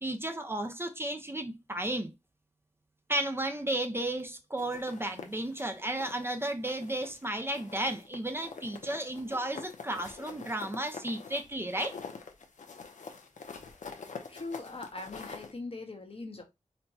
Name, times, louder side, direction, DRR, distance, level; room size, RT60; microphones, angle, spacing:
voice 1, 0.0-2.1 3.1-12.0, right 1 dB, 20° right, 0.6 m, -33 dB
sound 1, 4.6-6.3 6.6-7.3 7.5-15.5, left 5 dB, 75° left, 0.7 m, -46 dB
voice 2, 14.3-16.4, left 3 dB, 50° left, 0.9 m, -41 dB
4.3 x 2.2 x 2.7 m
cardioid pair, 55°, 13 cm